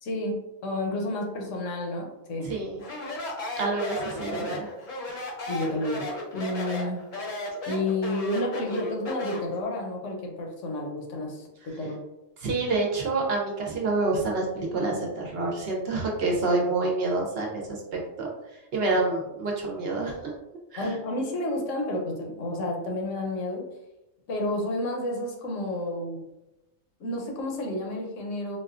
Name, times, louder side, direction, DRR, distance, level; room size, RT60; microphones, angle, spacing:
voice 1, 0.0-2.5 5.5-6.1 6.3-7.0 7.7-12.0 20.8-23.7 24.3-26.2 27.0-28.6, left 1 dB, 75° left, 1 dB, 1.0 m, -30 dB
voice 2, 2.4-2.8 3.6-4.7 5.1-5.3 12.4-17.8 18.2-18.3 18.7-20.3 20.7-20.9, right 3 dB, 60° right, -1 dB, 0.8 m, -27 dB
Speech, 2.8-9.5, left 1 dB, 50° left, 0.7 m, -34 dB
4.1 x 2.2 x 2.4 m, 0.95 s
omnidirectional pair, 1.3 m